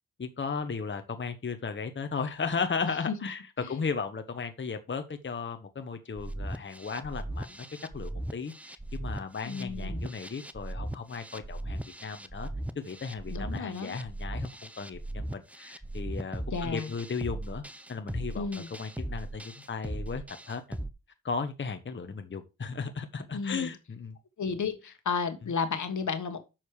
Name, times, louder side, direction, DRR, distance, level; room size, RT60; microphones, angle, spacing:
voice 1, 0.2-3.4 3.7-7.6 7.9-12.5 12.7-17.6 17.9-20.8 21.2-24.2, left 5 dB, 35° left, 1.1 m, -35 dB
sound 1, 6.2-20.9, right 1 dB, 5° right, 0.9 m, -38 dB
voice 2, 9.4-10.0 13.3-14.0 16.5-16.9 18.4-18.7 23.3-23.7 24.4-26.4, left 5 dB, 65° left, 1.5 m, -33 dB
7.4 x 6.4 x 4.8 m
cardioid pair, 60°, 32 cm